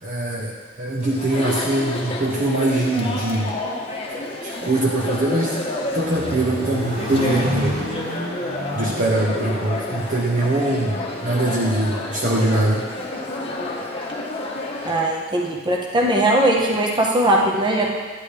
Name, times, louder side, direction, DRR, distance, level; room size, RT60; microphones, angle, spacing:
voice 1, 0.0-3.6 4.4-5.6 5.9-7.8 8.7-12.8, right 1 dB, 40° right, -3 dB, 0.9 m, -22 dB
Chatter, 1.0-15.1, left 2 dB, 30° left, 1.1 m, -30 dB
Accelerating revving vroom, 5.6-11.5, equal, 60° right, 3.0 m, -30 dB
voice 2, 14.8-17.9, right 1 dB, 20° right, -1 dB, 1.2 m, -19 dB
10.0 x 10.0 x 3.4 m, 1.5 s
head